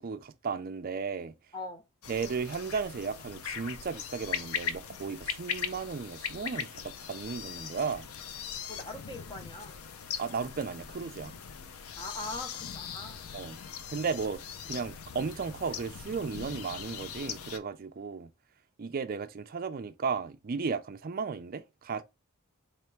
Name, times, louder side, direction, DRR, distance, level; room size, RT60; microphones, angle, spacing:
voice 1, 0.0-1.3 2.1-8.1 10.2-11.3 13.3-13.6 13.9-18.3 18.8-22.0, right 5 dB, 45° right, 0.4 m, -35 dB
sound 1, 2.0-17.6, left 7 dB, 80° left, 0.5 m, -40 dB
voice 2, 8.7-9.8 12.0-13.2, left 2 dB, 20° left, 0.7 m, -41 dB
4.1 x 3.3 x 3.0 m
head